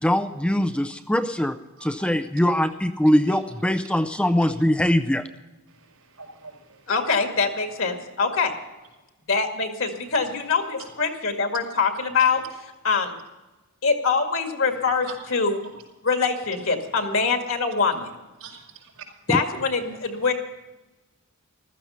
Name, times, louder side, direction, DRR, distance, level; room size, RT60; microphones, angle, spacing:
voice 1, 0.0-5.3, equal, 5° left, 8 dB, 0.4 m, -22 dB
voice 2, 1.8-2.1 5.7-6.9 10.8-10.9 12.2-12.3 18.4-19.1, right 6 dB, 80° right, 2 dB, 5.2 m, -44 dB
voice 3, 6.9-8.5 9.3-12.4 12.8-13.2 13.8-15.6 16.0-18.1 19.3-20.3, left 4 dB, 60° left, 4 dB, 2.1 m, -24 dB
15.0 x 13.5 x 5.7 m, 1.1 s
head